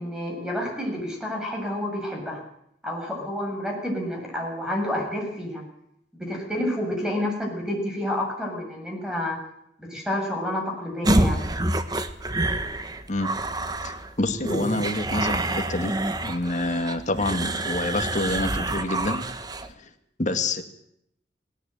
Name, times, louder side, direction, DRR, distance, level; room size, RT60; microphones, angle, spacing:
voice 1, 0.0-2.4 2.8-5.7 6.1-9.4 9.8-11.4, left 1 dB, 5° right, 0 dB, 7.0 m, -29 dB
sound 1, 11.0-19.7, right 1 dB, 20° right, 1.2 m, -27 dB
voice 2, 13.8-15.9 16.2-19.3 19.8-19.9 20.2-20.6, left 2 dB, 40° left, 6 dB, 2.1 m, -27 dB
19.0 x 17.0 x 9.1 m, 0.74 s
head